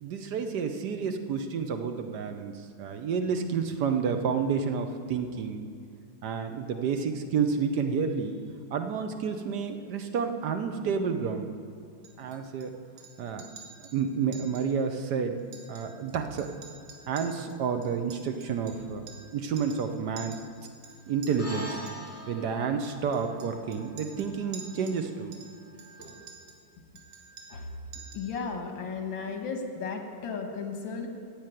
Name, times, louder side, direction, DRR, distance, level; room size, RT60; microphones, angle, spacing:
voice 1, 0.0-5.6 6.2-8.4 8.7-11.5 12.2-12.7 13.2-13.5 13.9-15.4 15.7-16.5 17.1-20.4 21.1-21.8 22.3-25.4, right 6 dB, 65° right, 6 dB, 1.3 m, -30 dB
Chink clink, 12.0-12.7 13.0-13.1 13.4-14.0 14.3-14.7 14.9-15.0 15.4-16.1 16.4-19.3 19.6-19.9 20.2-21.3 21.9-22.2 22.8-25.0 25.3-26.6 27.0-27.7 27.9-28.3, right 6 dB, 90° right, 2.1 m, -49 dB
sound 1, 21.4-26.0, equal, 5° left, 2.8 m, -44 dB
voice 2, 28.1-31.1, left 5 dB, 80° left, 3 dB, 2.1 m, -35 dB
15.0 x 5.1 x 9.0 m, 2.5 s
omnidirectional pair, 2.1 m